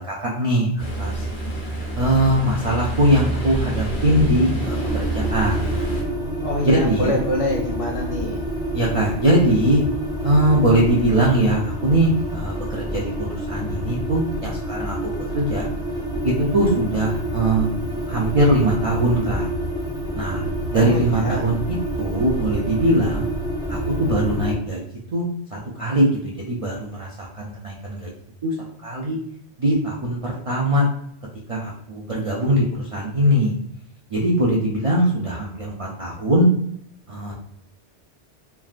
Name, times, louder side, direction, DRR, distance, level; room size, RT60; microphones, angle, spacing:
voice 1, 0.1-1.3 2.0-5.9 6.6-7.2 8.7-9.8 10.2-15.7 16.2-17.7 18.1-19.5 20.1-20.4 20.7-23.3 23.7-24.8 25.1-28.1 28.4-28.5 28.8-29.2 29.6-30.9 31.5-33.5 34.1-36.5 37.1-37.3, right 1 dB, 60° right, -4 dB, 0.3 m, -21 dB
Ocean, 0.8-6.0, right 2 dB, 85° left, 1.3 m, -27 dB
sound 1, 4.6-24.6, right 1 dB, 5° right, 0.6 m, -28 dB
voice 2, 6.4-8.4 20.7-21.5, left 1 dB, 35° left, -2 dB, 0.7 m, -25 dB
3.3 x 2.4 x 2.4 m, 0.70 s
omnidirectional pair, 1.2 m